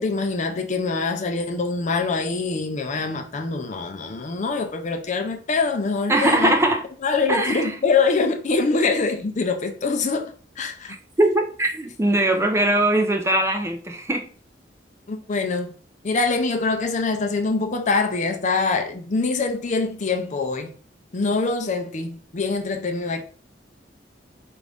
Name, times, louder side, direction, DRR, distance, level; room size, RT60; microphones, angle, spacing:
voice 1, 0.0-6.5 7.0-10.9 15.1-15.7 16.0-20.7 21.1-23.2, left 4 dB, 40° left, 0.5 m, -24 dB
voice 2, 6.1-6.8 7.3-7.7 11.2-14.2, right 1 dB, 15° right, 0.4 m, -21 dB
4.8 x 2.5 x 3.4 m
head